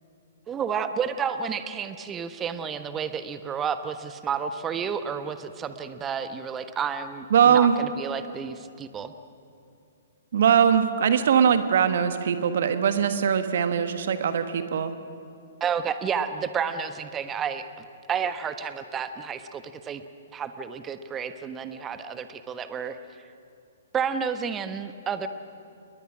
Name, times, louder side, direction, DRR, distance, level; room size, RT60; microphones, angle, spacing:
voice 1, 0.5-9.1 15.6-20.0 20.3-23.0 23.9-25.3, right 7 dB, 20° right, 10 dB, 1.1 m, -31 dB
voice 2, 7.3-7.8 10.3-14.9, right 8 dB, 55° right, 9 dB, 1.3 m, -21 dB
29.0 x 21.5 x 6.2 m, 2.4 s
figure-of-eight pair, 120°, 0 cm